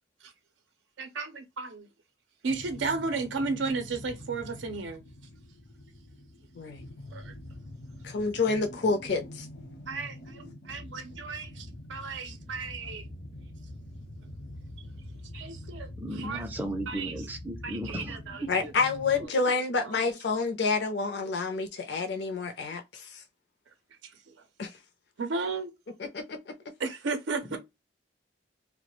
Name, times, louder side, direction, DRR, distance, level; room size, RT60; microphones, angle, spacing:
voice 1, 1.0-1.9 2.4-5.0 7.1-7.3 9.9-13.0 15.3-15.9 16.2-16.4 16.9-17.1 17.6-18.7 24.3-24.4 25.2-25.7 26.8-27.6, right 4 dB, 90° right, 0.5 m, -34 dB
sound 1, 2.5-19.3, left 1 dB, 85° left, 0.8 m, -45 dB
voice 2, 8.0-9.5 18.5-23.2 24.6-24.7 26.1-26.5, left 4 dB, 60° left, 0.4 m, -28 dB
voice 3, 16.0-18.5 27.5-27.6, right 1 dB, 10° right, 0.4 m, -36 dB
2.3 x 2.1 x 2.9 m
head